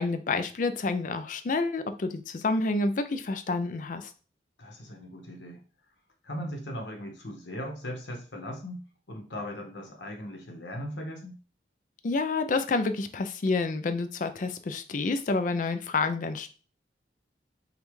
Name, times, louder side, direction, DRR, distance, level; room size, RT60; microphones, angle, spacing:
voice 1, 0.0-4.1 12.0-16.5, left 3 dB, 45° left, 10 dB, 0.4 m, -29 dB
voice 2, 4.6-5.6 6.2-11.4, equal, 90° left, 2 dB, 1.1 m, -38 dB
5.3 x 2.4 x 3.1 m, 0.37 s
head